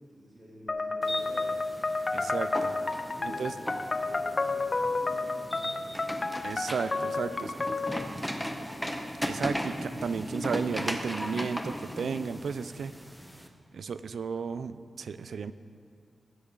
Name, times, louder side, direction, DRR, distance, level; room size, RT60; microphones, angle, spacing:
voice 1, 0.1-1.6 2.1-2.3 2.8-3.6 4.0-6.6 7.1-8.5, right 1 dB, 40° right, -7 dB, 2.8 m, -49 dB
sound 1, 0.7-8.1, left 3 dB, 40° left, 0.5 m, -31 dB
sound 2, 1.0-13.5, equal, ahead, 0.8 m, -37 dB
voice 2, 2.1-2.7 3.4-3.5 6.4-7.5 9.2-12.9 13.7-15.5, right 5 dB, 90° right, 13 dB, 0.3 m, -33 dB
15.5 x 8.0 x 3.8 m, 2.2 s
wide cardioid pair, 90°, 0 cm